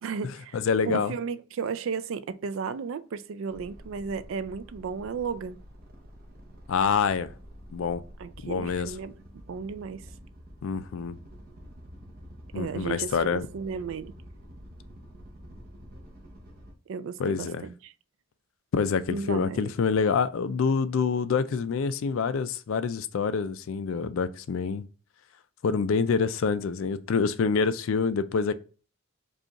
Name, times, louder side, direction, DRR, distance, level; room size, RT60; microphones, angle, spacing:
voice 1, 0.0-0.6 0.8-5.6 8.2-9.2 9.5-10.0 12.5-14.1 16.9-17.9 19.1-19.7, right 6 dB, 60° right, 0.3 m, -34 dB
voice 2, 0.5-1.1 6.7-7.3 7.7-8.0 8.4-8.9 10.6-11.2 12.5-13.5 17.2-17.6 18.7-24.8 25.6-28.5, left 5 dB, 60° left, 0.3 m, -26 dB
sound 1, 3.5-16.7, equal, 45° right, 0.8 m, -48 dB
5.0 x 2.4 x 2.8 m
head